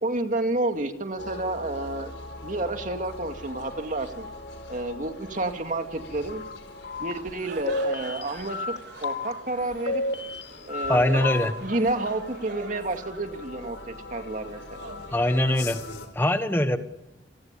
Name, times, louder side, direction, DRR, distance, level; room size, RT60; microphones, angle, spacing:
voice 1, 0.0-2.2 2.4-4.3 4.7-6.4 7.0-8.7 9.0-10.0 10.7-11.3 11.6-14.9, right 2 dB, 45° right, 5 dB, 2.4 m, -30 dB
sound 1, 1.2-16.1, left 2 dB, 80° left, 4.9 m, -43 dB
sound 2, 6.3-6.6 6.8-7.1 7.7-8.8 9.0-9.3 9.9-11.0 11.2-11.5, left 3 dB, 65° left, 2.5 m, -31 dB
sound 3, 7.0-16.0, right 3 dB, 65° right, 4.0 m, -44 dB
voice 2, 10.9-11.5 15.1-15.8 16.1-16.8, left 1 dB, 10° left, 8 dB, 1.2 m, -22 dB
30.0 x 19.5 x 8.4 m, 0.89 s
head